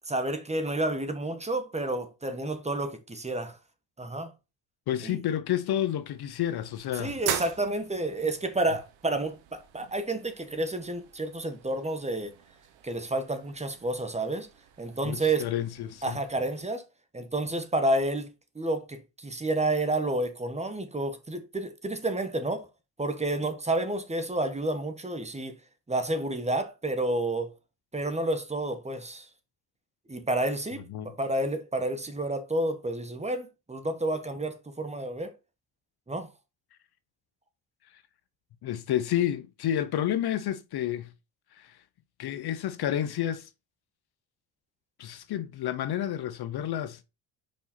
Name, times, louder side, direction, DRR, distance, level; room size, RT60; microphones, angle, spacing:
voice 1, 0.1-3.6 4.0-4.3 5.0-5.2 7.0-12.3 12.8-14.5 14.8-15.5 16.0-16.8 17.1-22.7 23.0-25.6 25.9-27.5 27.9-29.3 30.1-35.3 36.1-36.3, right 2 dB, 15° right, 1.2 m, -30 dB
voice 2, 4.9-7.2 15.0-16.2 30.9-31.1 38.6-41.1 41.6-41.8 42.2-43.5 45.0-47.0, left 11 dB, 55° left, 0.7 m, -30 dB
sound 1, 5.8-16.6, right 11 dB, 90° right, 1.1 m, -42 dB
5.4 x 5.2 x 4.2 m
cardioid pair, 90°, 45 cm